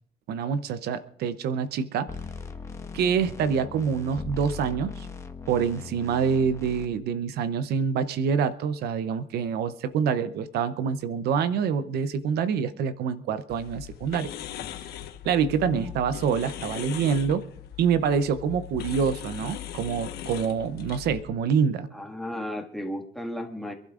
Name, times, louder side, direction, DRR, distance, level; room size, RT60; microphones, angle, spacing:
voice 1, 0.3-2.1 2.9-5.1 5.5-14.3 15.2-17.4 17.8-21.9, right 6 dB, 70° right, 13 dB, 0.7 m, -26 dB
sound 1, 2.1-6.9, left 5 dB, 15° left, 1.2 m, -39 dB
sound 2, 13.5-21.2, left 11 dB, 70° left, 1.2 m, -39 dB
voice 2, 21.9-23.7, left 1 dB, ahead, 2 dB, 1.8 m, -34 dB
26.5 x 12.0 x 2.5 m, 0.68 s
cardioid pair, 110°, 17 cm